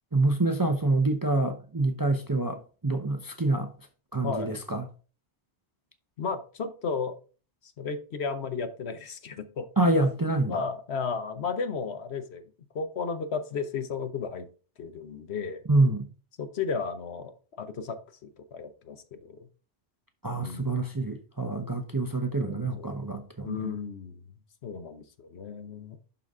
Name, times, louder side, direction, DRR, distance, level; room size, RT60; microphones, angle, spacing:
voice 1, 0.1-2.6 2.8-3.7 4.1-4.8 9.8-10.6 15.7-16.1 20.2-23.7, right 2 dB, 25° right, 0.6 m, -26 dB
voice 2, 6.2-7.2 7.8-9.7 10.5-12.4 12.7-14.5 14.8-15.6 16.4-17.3 17.6-19.4 20.3-20.7 22.4-23.0 23.4-24.2 24.6-26.0, left 5 dB, 65° left, 1.1 m, -34 dB
11.0 x 4.0 x 3.6 m
omnidirectional pair, 1.2 m